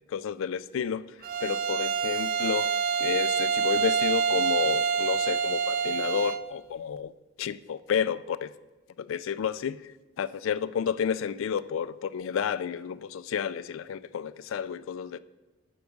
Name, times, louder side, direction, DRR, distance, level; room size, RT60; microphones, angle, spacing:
voice 1, 0.1-1.1 1.4-2.7 3.0-7.1 7.4-8.5 9.0-9.9 10.2-15.2, left 7 dB, 80° left, 0.3 m, -31 dB
Bowed string instrument, 1.2-6.5, right 6 dB, 45° right, 0.4 m, -27 dB
12.0 x 4.7 x 5.2 m
head